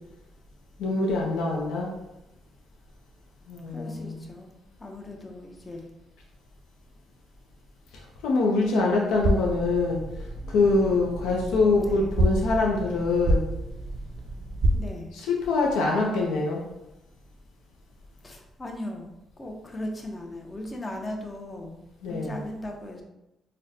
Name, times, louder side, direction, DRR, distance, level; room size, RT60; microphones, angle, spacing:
voice 1, 0.8-1.9 3.5-4.2 7.9-13.4 15.1-16.6 22.0-22.4, left 3 dB, 90° left, -1 dB, 0.5 m, -24 dB
voice 2, 3.7-4.5 4.8-5.9 11.8-12.1 14.7-15.1 18.2-19.1 19.4-23.0, left 1 dB, 25° left, 2 dB, 0.6 m, -38 dB
sound 1, 9.2-14.8, right 1 dB, 45° right, 0.3 m, -28 dB
3.8 x 2.2 x 2.6 m, 0.91 s
cardioid pair, 90°, 0 cm